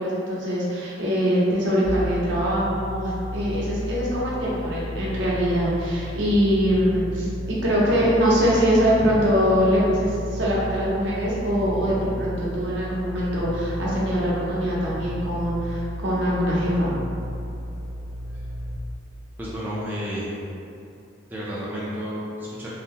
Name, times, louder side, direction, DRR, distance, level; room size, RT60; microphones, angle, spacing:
voice 1, 0.0-7.3 7.6-17.0, equal, 70° right, -7 dB, 0.8 m, -23 dB
sound 1, 1.8-18.8, equal, 85° left, 0.4 m, -33 dB
voice 2, 19.4-20.3 21.3-22.7, equal, 10° right, -8 dB, 0.3 m, -31 dB
2.8 x 2.0 x 3.5 m, 2.6 s
head